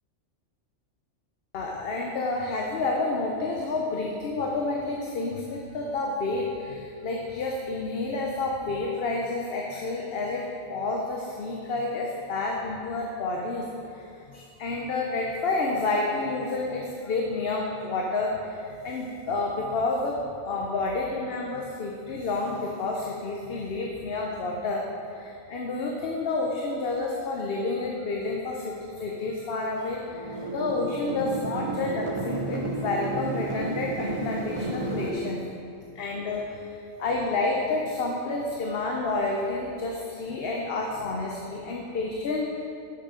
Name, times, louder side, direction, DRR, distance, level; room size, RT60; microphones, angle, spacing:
voice 1, 1.5-20.2 20.4-35.4 35.9-42.6, left 3 dB, 55° left, -1 dB, 0.9 m, -30 dB
sound 1, 30.1-35.1, right 2 dB, 30° right, 0.6 m, -32 dB
8.2 x 6.3 x 5.0 m, 2.5 s
omnidirectional pair, 1.3 m